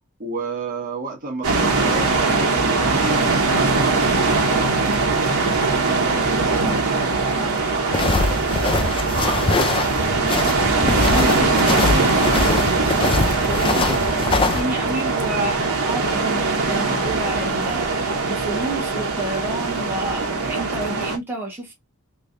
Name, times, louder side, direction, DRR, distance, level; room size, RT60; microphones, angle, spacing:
voice 1, 0.2-6.8 7.4-10.2, right 3 dB, 40° right, 1.2 m, -33 dB
sound 1, 1.4-21.2, right 3 dB, 80° right, 1.0 m, -21 dB
sound 2, 7.9-14.6, left 3 dB, 25° left, 0.4 m, -23 dB
Zipper (clothing), 9.8-13.9 14.5-14.6, left 3 dB, 65° left, 1.4 m, -37 dB
voice 2, 10.8-12.6 13.4-21.7, right 1 dB, 10° right, 1.2 m, -30 dB
3.2 x 3.2 x 2.5 m
head